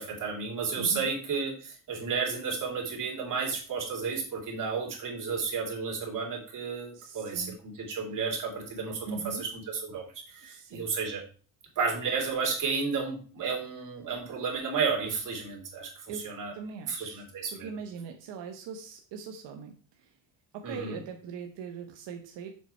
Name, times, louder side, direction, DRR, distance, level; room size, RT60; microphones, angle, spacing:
voice 1, 0.0-11.2 11.7-16.5 16.9-17.7 20.6-21.0, right 5 dB, 45° right, -1 dB, 3.2 m, -32 dB
voice 2, 0.8-1.1 6.9-7.6 9.0-9.4 10.4-10.9 16.1-20.2 20.5-22.5, right 6 dB, 85° right, 4 dB, 1.2 m, -41 dB
7.3 x 6.9 x 4.4 m, 0.39 s
cardioid pair, 180°, 42 cm